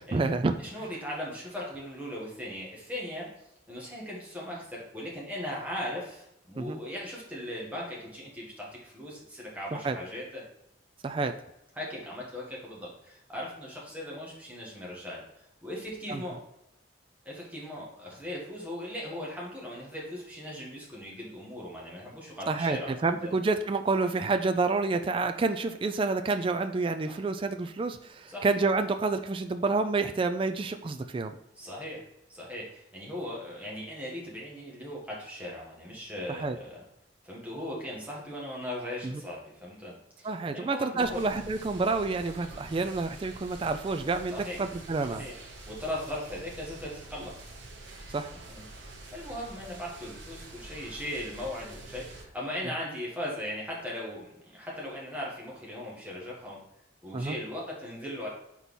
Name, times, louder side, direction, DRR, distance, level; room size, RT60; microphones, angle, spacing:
voice 1, 0.1-0.5 6.6-6.8 9.7-10.0 11.0-11.3 16.1-16.2 22.5-22.8 23.0-31.3 36.3-36.6 39.0-39.2 40.2-45.2 48.1-48.3 57.1-57.4, right 3 dB, 30° right, 7 dB, 0.3 m, -28 dB
voice 2, 0.6-3.3 3.7-10.5 11.7-15.2 15.6-16.4 17.2-23.3 27.1-27.2 28.3-28.4 31.5-36.8 37.2-41.2 44.3-44.6 45.1-47.5 48.3-56.6 57.0-58.3, left 1 dB, 10° right, -4 dB, 1.6 m, -38 dB
sound 1, 41.0-52.3, right 2 dB, 80° right, 1.0 m, -46 dB
4.6 x 4.2 x 5.3 m, 0.82 s
head